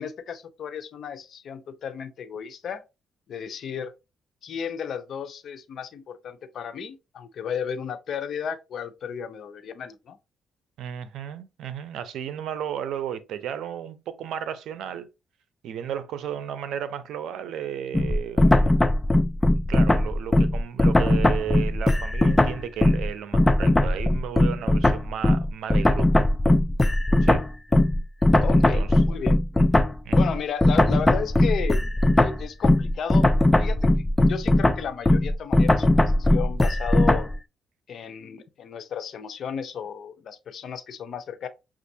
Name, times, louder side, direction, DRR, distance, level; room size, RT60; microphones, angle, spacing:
voice 1, 0.0-2.8 3.3-3.9 4.4-10.2 28.3-29.4 30.1-33.3 33.6-37.3 37.9-41.5, left 7 dB, 60° left, 0.6 m, -34 dB
voice 2, 10.8-15.1 15.6-18.5 19.7-26.1 27.2-27.5 28.3-28.9 30.0-30.2, right 9 dB, 80° right, 0.6 m, -34 dB
sound 1, 17.9-23.1 23.3-37.3, left 1 dB, 15° left, 0.4 m, -19 dB
6.0 x 2.4 x 2.7 m
cardioid pair, 90°, 0 cm